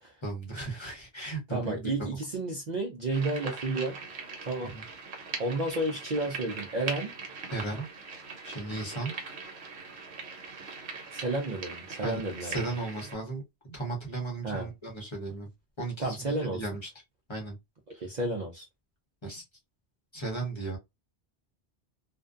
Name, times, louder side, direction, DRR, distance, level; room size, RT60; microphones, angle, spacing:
voice 1, 0.2-1.9 4.7-4.8 7.5-7.9 8.4-9.1 12.0-13.4 13.7-15.5 15.8-16.9 17.3-17.5 17.9-18.1 19.2-19.4 20.1-20.8, right 3 dB, 30° left, 0.8 m, -36 dB
voice 2, 1.5-4.0 4.4-4.8 5.4-7.1 11.1-12.7 14.4-14.7 16.0-16.6 18.0-18.6, right 2 dB, 50° right, 0.5 m, -31 dB
sound 1, 3.1-13.1, right 4 dB, 75° right, 1.1 m, -41 dB
2.5 x 2.2 x 2.4 m
omnidirectional pair, 1.1 m